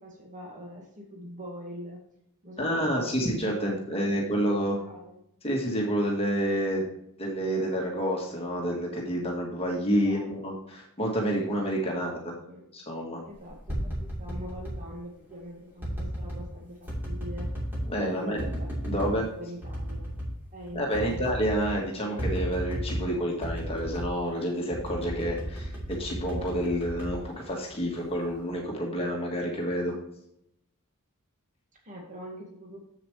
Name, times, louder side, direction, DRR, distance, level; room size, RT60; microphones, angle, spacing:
voice 1, 0.0-2.0 2.4-3.3 3.6-5.2 9.9-10.5 11.9-17.5 18.1-20.1 20.5-21.3 31.8-32.8, equal, 35° right, -1 dB, 1.9 m, -44 dB
voice 2, 2.6-4.8 5.4-6.9 7.2-12.3 12.7-13.2 17.9-18.4 18.9-19.2 20.7-30.0, equal, 25° left, -1 dB, 1.5 m, -29 dB
sound 1, 13.4-14.8 15.8-16.4 16.9-17.9 18.4-19.2 19.6-20.3 20.6-20.7 20.9-21.8 22.2-23.1 23.4-24.2 24.7-27.8 28.2-28.6, equal, 10° right, 2.8 m, -33 dB
7.7 x 7.1 x 3.2 m, 0.76 s
head